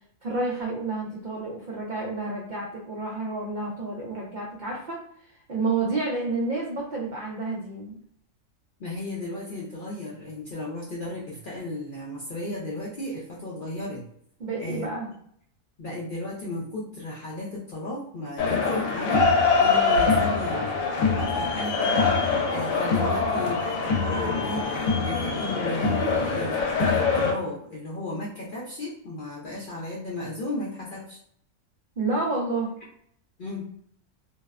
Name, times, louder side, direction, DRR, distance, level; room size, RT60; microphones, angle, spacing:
voice 1, 0.2-5.0 5.5-8.0 14.4-15.1 32.0-32.7, right 3 dB, 70° right, -3 dB, 0.4 m, -29 dB
voice 2, 8.8-14.0 14.6-14.9 15.8-19.3 19.6-22.1 22.5-31.2 33.4-33.7, left 1 dB, 60° left, -5 dB, 0.5 m, -35 dB
sound 1, 18.4-27.3, left 4 dB, 80° left, 1.0 m, -23 dB
2.5 x 2.1 x 2.3 m, 0.68 s
omnidirectional pair, 1.4 m